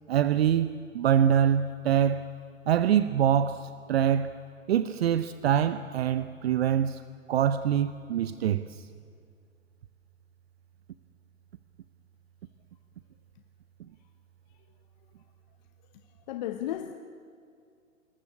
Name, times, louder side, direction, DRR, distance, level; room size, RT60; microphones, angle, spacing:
voice 1, 0.1-2.3 2.7-4.4 4.7-7.0 7.3-8.9, right 9 dB, 50° right, 0.8 m, -25 dB
voice 2, 15.9-16.9, left 12 dB, 35° left, 0.9 m, -35 dB
21.5 x 20.0 x 8.5 m
hypercardioid pair, 140°, 40 cm